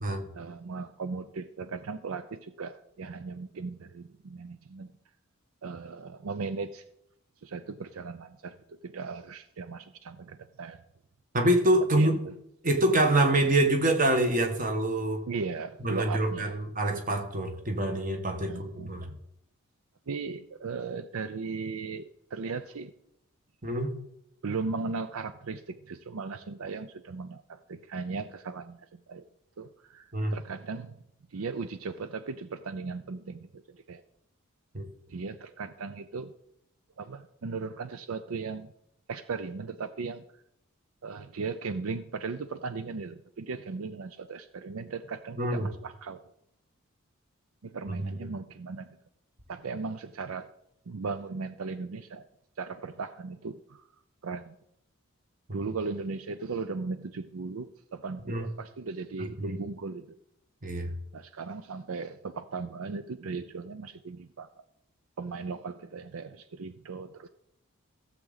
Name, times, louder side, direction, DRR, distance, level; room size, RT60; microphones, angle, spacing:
voice 1, 0.3-5.0 5.6-6.8 7.4-10.8 11.9-12.3 15.3-16.6 18.5-19.0 20.1-22.9 24.4-29.3 29.6-31.0 31.3-34.0 35.1-36.3 37.0-38.7 39.1-40.2 41.0-46.2 47.6-49.0 49.5-50.5 50.9-52.3 52.6-53.8 54.2-54.5 55.5-60.2 61.1-64.6 65.2-67.3, right 4 dB, 75° right, 11 dB, 0.5 m, -37 dB
voice 2, 11.3-12.2 12.6-15.2 15.8-19.1 23.6-23.9 30.1-30.3 34.7-34.9 45.4-45.7 47.9-48.1 55.5-55.6 58.3-58.5 59.4-59.6 60.6-60.9, right 1 dB, 35° right, 5 dB, 1.3 m, -26 dB
15.5 x 7.5 x 4.0 m, 0.79 s
head